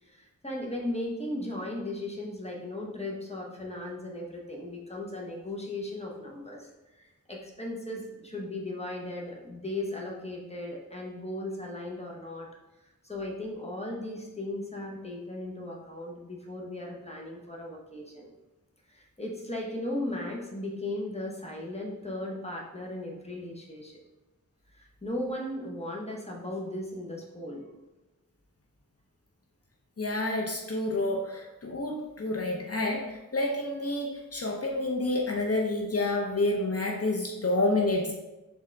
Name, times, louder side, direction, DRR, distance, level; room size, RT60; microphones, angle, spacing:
voice 1, 0.0-6.7 6.9-12.5 13.0-18.3 18.9-24.0 24.7-27.7, left 1 dB, 20° left, -2 dB, 0.9 m, -37 dB
voice 2, 30.0-38.2, left 2 dB, 45° left, -1 dB, 0.7 m, -29 dB
3.8 x 3.4 x 3.3 m, 1.0 s
wide cardioid pair, 50°, 34 cm